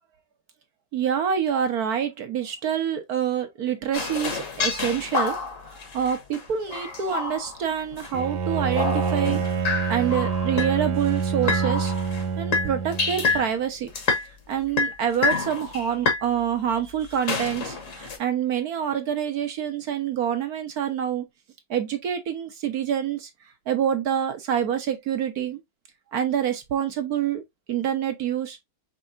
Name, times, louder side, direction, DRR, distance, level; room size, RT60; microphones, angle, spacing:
voice 1, 0.9-5.4 5.7-9.4 9.7-11.9 12.4-13.9 14.5-21.2 21.7-23.3 23.7-25.6 26.1-27.4 27.7-28.6, right 9 dB, 60° right, 1.2 m, -26 dB
sound 1, 3.9-8.3 8.6-12.3 12.5-13.5 13.9-14.3 14.7-16.2 17.1-18.2, left 4 dB, 45° left, 1.3 m, -28 dB
Bowed string instrument, 8.1-13.5, right 6 dB, 85° right, 1.6 m, -27 dB
5.4 x 3.4 x 2.5 m
omnidirectional pair, 2.1 m